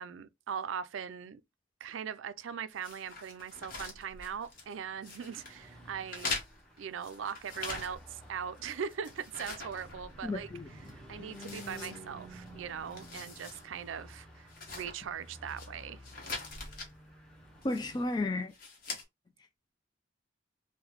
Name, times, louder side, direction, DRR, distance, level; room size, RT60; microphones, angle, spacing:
voice 1, 0.0-1.4 1.8-6.4 6.8-10.5 10.9-16.0, right 7 dB, 90° right, 0.4 m, -40 dB
sound 1, 2.8-4.7 5.0-5.6 6.1-8.2 8.6-10.5 10.8-10.9 11.3-12.5 12.8-13.6 14.0-14.1 14.5-15.7 16.0-16.9 17.6-18.1 18.5-19.0, left 3 dB, 50° left, 1.1 m, -42 dB
Car passing by / Truck, 3.9-18.3, equal, 5° left, 0.8 m, -52 dB
voice 2, 10.2-10.7 17.6-18.5, left 2 dB, 20° left, 0.4 m, -32 dB
3.8 x 2.2 x 3.0 m
head